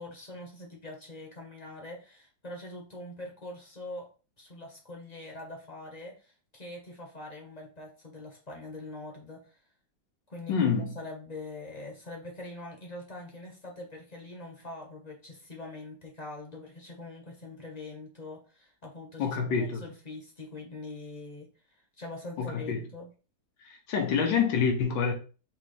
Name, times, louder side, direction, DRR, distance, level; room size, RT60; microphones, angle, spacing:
voice 1, 0.0-4.1 4.4-9.6 10.3-21.5 22.0-23.1, left 2 dB, 25° left, 1.0 m, -43 dB
voice 2, 10.5-11.0 19.2-19.8 22.4-22.8 23.6-25.1, left 6 dB, 85° left, 1.5 m, -27 dB
4.9 x 3.1 x 3.1 m
omnidirectional pair, 1.9 m